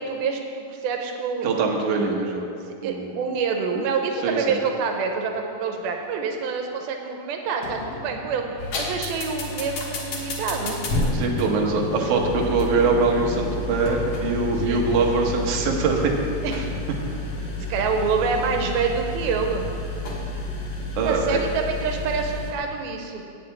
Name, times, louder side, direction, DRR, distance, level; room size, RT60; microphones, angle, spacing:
voice 1, 0.0-2.0 2.8-8.4 8.8-10.8 14.6-14.9 16.4-16.7 17.7-19.7 21.0-23.3, right 5 dB, 90° right, 3 dB, 2.7 m, -27 dB
voice 2, 1.4-2.5 2.8-3.2 3.8-3.9 4.2-4.6 11.1-16.1 21.0-21.4, right 4 dB, 65° right, 0 dB, 2.3 m, -23 dB
sound 1, 7.6-10.8 11.1-11.2 13.9-19.9, left 7 dB, 75° left, 1.6 m, -40 dB
sound 2, 8.6-22.5, left 2 dB, 55° left, 1.9 m, -30 dB
8.5 x 6.7 x 8.5 m, 2.5 s
omnidirectional pair, 4.3 m